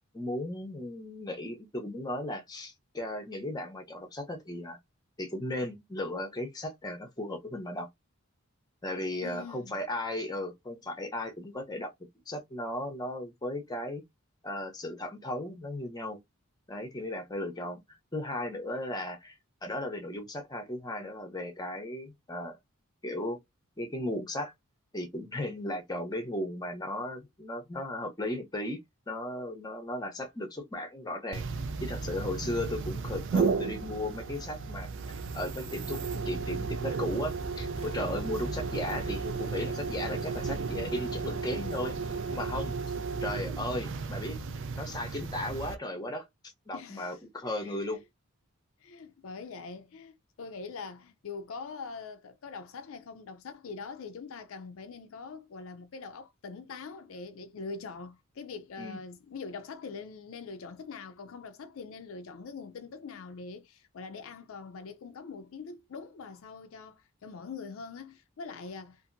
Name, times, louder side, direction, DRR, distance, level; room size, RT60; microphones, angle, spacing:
voice 1, 0.1-4.8 5.2-7.9 8.8-11.9 12.3-14.0 14.4-16.2 16.7-17.8 18.1-19.4 19.6-22.6 23.0-23.4 23.8-24.5 24.9-28.8 29.1-31.4 31.8-34.9 35.3-36.0 36.3-41.9 42.3-42.7 43.2-44.4 44.8-46.3 46.7-48.0 58.8-59.0, left 1 dB, 20° left, 0.6 m, -36 dB
voice 2, 9.2-9.8 46.7-48.0 48.8-69.0, left 4 dB, 65° left, 0.4 m, -43 dB
sound 1, 31.3-45.8, right 5 dB, 55° right, 0.4 m, -34 dB
sound 2, 37.0-42.8, right 1 dB, 25° right, 0.7 m, -44 dB
2.7 x 2.5 x 2.5 m
head